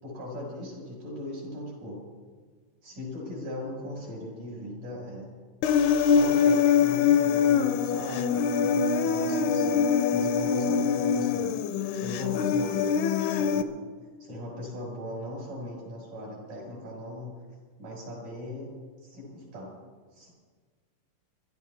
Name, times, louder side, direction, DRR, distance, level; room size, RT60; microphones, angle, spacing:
voice 1, 0.0-2.0 2.8-5.3 6.0-11.6 11.9-13.0 13.3-13.8 14.2-17.3 17.8-18.7 19.0-19.7 20.1-20.3, left 1 dB, 65° right, -3 dB, 7.1 m, -39 dB
Human voice, 5.6-13.6, left 6 dB, 75° left, 2.1 m, -24 dB
27.5 x 12.0 x 3.6 m, 1.5 s
omnidirectional pair, 3.9 m